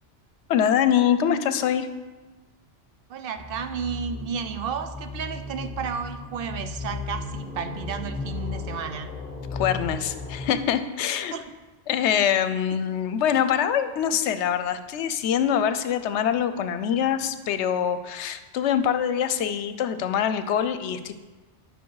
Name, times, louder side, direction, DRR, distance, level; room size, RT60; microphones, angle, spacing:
voice 1, 0.5-1.9 9.5-11.3 11.9-21.1, left 9 dB, 75° left, 11 dB, 0.8 m, -24 dB
voice 2, 3.1-9.1 11.3-11.4, right 7 dB, 60° right, 9 dB, 0.7 m, -32 dB
sound 1, 3.4-10.6, left 3 dB, 10° left, 1.8 m, -35 dB
9.4 x 5.8 x 4.7 m, 1.3 s
omnidirectional pair, 1.2 m